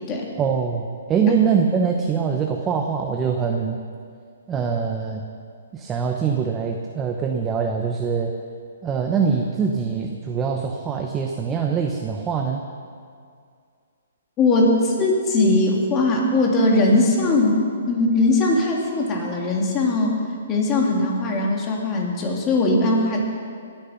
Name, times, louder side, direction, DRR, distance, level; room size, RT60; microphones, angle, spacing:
voice 1, 0.4-0.8 1.1-3.8 4.5-5.2 5.7-8.3 8.8-12.6, right 6 dB, 15° right, 2 dB, 0.9 m, -23 dB
voice 2, 14.4-20.1 20.5-23.2, left 2 dB, 25° left, -1 dB, 3.0 m, -20 dB
20.0 x 9.1 x 6.0 m, 2.2 s
hypercardioid pair, 145°, 0 cm